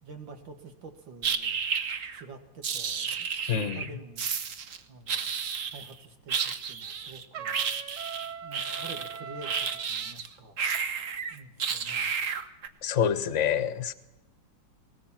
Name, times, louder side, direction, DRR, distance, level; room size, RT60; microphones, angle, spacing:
voice 1, 0.0-1.6 2.1-4.4 4.9-5.3 5.7-7.6 8.4-10.6 11.3-12.1, right 3 dB, 85° right, 6 dB, 2.8 m, -48 dB
sound 1, 1.2-2.2 2.6-3.9 4.2-4.8 5.1-5.9 6.3-10.3 10.6-12.7, right 6 dB, 50° right, 1.3 m, -32 dB
voice 2, 3.5-3.8 12.8-13.9, left 8 dB, 45° left, 13 dB, 1.3 m, -27 dB
Trumpet, 7.3-9.9, right 7 dB, 65° right, 1.7 m, -41 dB
19.5 x 19.5 x 7.4 m, 0.93 s
omnidirectional pair, 2.0 m